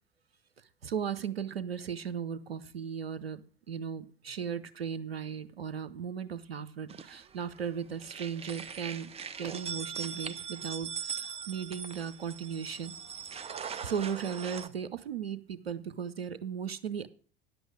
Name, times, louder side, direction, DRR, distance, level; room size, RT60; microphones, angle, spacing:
voice 1, 0.8-9.1 9.4-12.9 13.3-17.1, right 7 dB, 80° right, 14 dB, 0.8 m, -37 dB
sound 1, 6.9-7.7 8.0-14.7, right 7 dB, 20° right, 0.7 m, -41 dB
10.0 x 7.9 x 6.3 m, 0.43 s
figure-of-eight pair, 75°, 30 cm